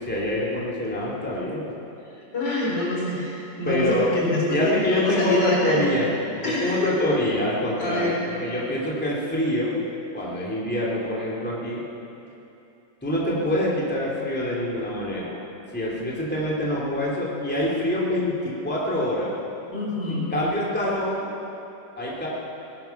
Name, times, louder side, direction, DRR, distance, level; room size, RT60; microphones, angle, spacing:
voice 1, 0.0-1.7 3.7-4.1 4.5-9.8 10.1-11.8 13.0-15.4 15.7-19.3 20.1-21.3 22.0-22.3, left 1 dB, 5° left, -6 dB, 2.7 m, -25 dB
voice 2, 2.3-5.9 6.4-6.9 7.8-8.2 19.7-20.3, left 2 dB, 70° left, -5 dB, 4.5 m, -25 dB
18.5 x 12.0 x 5.9 m, 2.8 s
omnidirectional pair, 2.0 m